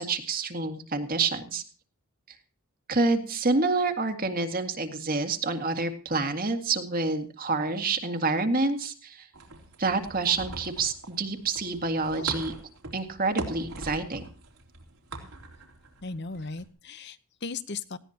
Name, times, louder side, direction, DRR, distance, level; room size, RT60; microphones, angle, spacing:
voice 1, 0.0-1.6 2.9-9.3 9.8-12.5 12.9-14.2, right 3 dB, 40° right, 6 dB, 1.9 m, -28 dB
sound 1, 9.3-16.7, right 2 dB, 80° right, 3.5 m, -41 dB
voice 2, 16.0-18.0, left 4 dB, 50° left, 14 dB, 0.9 m, -37 dB
19.0 x 16.0 x 2.9 m, 0.37 s
head